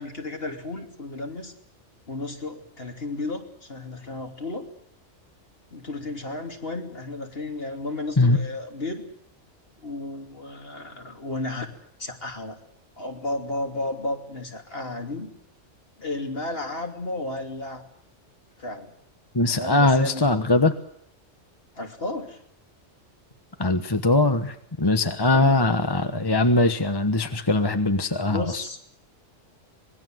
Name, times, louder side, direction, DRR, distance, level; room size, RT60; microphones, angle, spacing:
voice 1, 0.0-1.5 2.1-4.7 5.7-9.0 9.8-12.6 13.0-15.3 16.0-17.8 18.6-18.9 19.6-20.3 21.8-22.4 25.3-25.6 28.2-28.8, left 2 dB, 50° left, 3 dB, 3.2 m, -33 dB
voice 2, 19.3-20.7 23.6-28.6, left 2 dB, 20° left, 8 dB, 1.1 m, -21 dB
25.5 x 21.0 x 7.8 m, 0.66 s
omnidirectional pair, 1.3 m